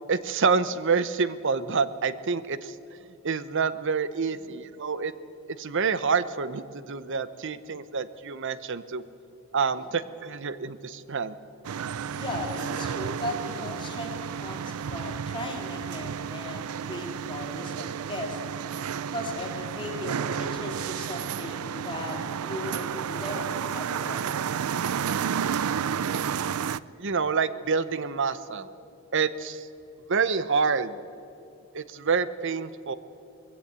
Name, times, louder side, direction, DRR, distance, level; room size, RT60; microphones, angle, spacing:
voice 1, 0.1-2.8 3.2-5.1 5.6-9.0 9.5-11.4 25.9-26.3 27.0-28.7 29.1-29.7 30.1-31.0 31.7-32.9, right 5 dB, 60° right, 15 dB, 0.8 m, -27 dB
sound 1, 11.6-26.8, right 7 dB, 90° right, 0.5 m, -31 dB
voice 2, 12.1-18.4 19.1-24.5, left 1 dB, 25° left, 0 dB, 3.1 m, -37 dB
20.5 x 16.0 x 8.2 m, 2.8 s
head